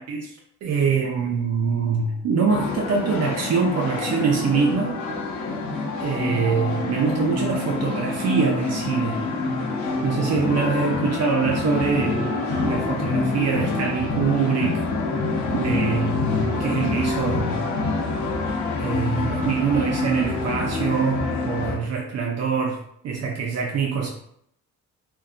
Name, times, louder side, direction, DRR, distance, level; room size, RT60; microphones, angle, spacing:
voice 1, 0.0-5.0 6.0-9.2 10.0-14.8 15.5-17.7 18.8-24.1, right 5 dB, 60° right, -1 dB, 0.5 m, -24 dB
sound 1, 2.5-21.8, left 3 dB, 70° left, 0.7 m, -26 dB
2.5 x 2.2 x 2.4 m, 0.72 s
cardioid pair, 90°, 30 cm